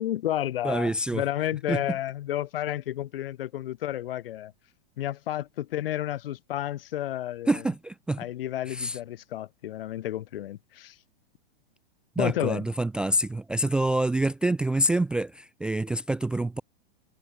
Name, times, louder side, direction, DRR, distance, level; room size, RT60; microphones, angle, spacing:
voice 1, 0.0-4.5 5.0-7.6 8.2-11.0 12.2-12.7, left 13 dB, 70° left, 1.8 m, -31 dB
voice 2, 0.6-1.2 1.7-1.8 7.5-8.2 8.7-9.0 12.2-16.6, right 1 dB, 5° right, 0.4 m, -26 dB
hypercardioid pair, 150°, 30 cm